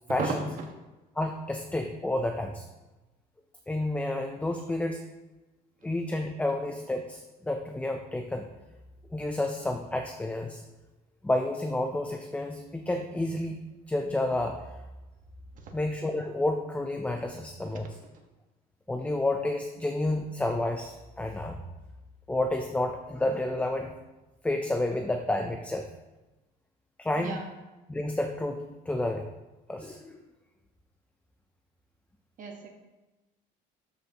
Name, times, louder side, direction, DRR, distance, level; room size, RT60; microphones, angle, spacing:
voice 1, 1.2-2.6 3.7-5.0 5.8-8.5 9.1-10.6 11.2-13.6 13.9-14.7 15.7-17.9 18.9-21.6 22.3-23.9 24.4-25.9 27.0-27.4 27.9-29.3 29.7-30.2, left 1 dB, 5° left, 4 dB, 0.5 m, -30 dB
voice 2, 27.1-27.5 32.4-32.7, right 6 dB, 45° right, 2 dB, 1.4 m, -37 dB
12.5 x 5.6 x 2.9 m, 1.1 s
cardioid pair, 135°, 18 cm